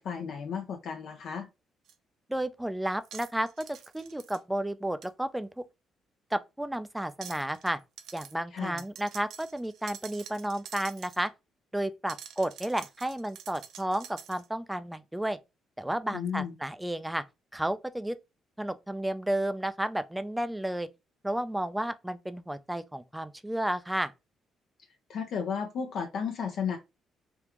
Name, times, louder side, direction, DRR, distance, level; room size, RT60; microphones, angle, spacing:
voice 1, 0.0-1.5 8.5-8.8 16.1-16.5 25.1-26.8, left 6 dB, 65° left, 0.6 m, -33 dB
sound 1, 1.9-2.0 3.0-4.4 5.0-5.1 7.1-7.7 8.0-8.3 8.8-11.3 12.1-14.5, right 8 dB, 80° right, 0.4 m, -47 dB
voice 2, 2.3-3.7 3.9-5.5 6.3-7.8 8.1-11.3 11.7-15.4 15.8-17.2 17.5-18.2 18.6-20.9 21.2-24.1, right 1 dB, 5° right, 0.4 m, -32 dB
3.6 x 2.4 x 2.9 m
cardioid pair, 90°, 0 cm